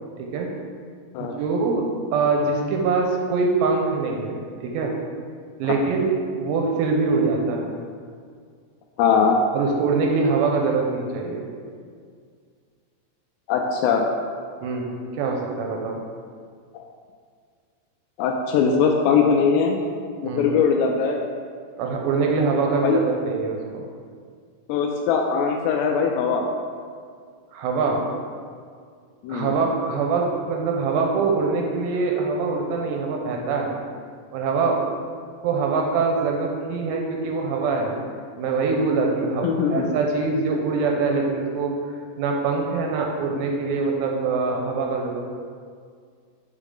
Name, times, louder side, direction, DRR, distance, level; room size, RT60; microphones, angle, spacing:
voice 1, 0.2-0.5 1.2-5.0 5.6-6.1 6.4-7.7 9.5-11.5 14.6-16.0 20.2-20.5 21.8-23.8 27.5-28.0 29.3-33.8 34.3-34.9 35.4-37.9 38.4-45.2, right 4 dB, 80° right, 1 dB, 2.7 m, -24 dB
voice 2, 9.0-9.4 13.5-14.0 16.7-16.8 18.2-19.8 20.2-21.3 22.8-23.0 24.7-26.5 29.2-29.6 39.4-39.9, left 6 dB, 90° left, 2 dB, 2.4 m, -21 dB
8.9 x 4.6 x 3.8 m, 2.1 s
omnidirectional pair, 5.4 m